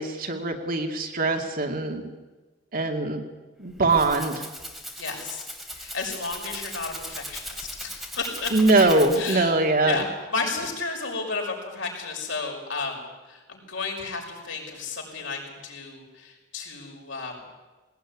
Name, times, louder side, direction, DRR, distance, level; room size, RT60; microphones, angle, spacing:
voice 1, 0.0-2.1 2.7-3.2 3.6-4.5 8.5-10.1, right 2 dB, 50° right, 4 dB, 2.4 m, -22 dB
Rattle (instrument), 3.6-9.6, equal, ahead, 3.1 m, -38 dB
voice 2, 5.0-5.4 5.7-8.5 9.2-9.5 9.8-17.5, left 4 dB, 75° left, 1 dB, 6.0 m, -33 dB
19.5 x 18.5 x 9.8 m, 1.2 s
head